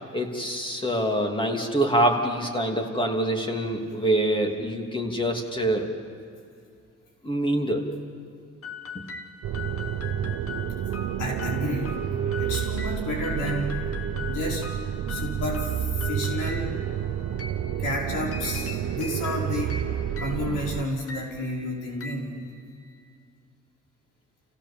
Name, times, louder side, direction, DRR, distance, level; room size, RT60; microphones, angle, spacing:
voice 1, 0.1-5.9 7.2-7.9 8.9-9.0, right 1 dB, 15° left, 2 dB, 3.0 m, -25 dB
sound 1, 8.6-23.1, left 4 dB, 50° left, 1.9 m, -41 dB
sound 2, 9.4-20.8, right 9 dB, 70° right, 0.8 m, -30 dB
voice 2, 11.2-12.0 12.4-13.8 14.3-14.6 15.1-16.7 17.8-19.8 20.2-22.3, left 1 dB, 85° left, -2 dB, 5.3 m, -31 dB
29.0 x 16.0 x 7.2 m, 2.3 s
cardioid pair, 90°, 30 cm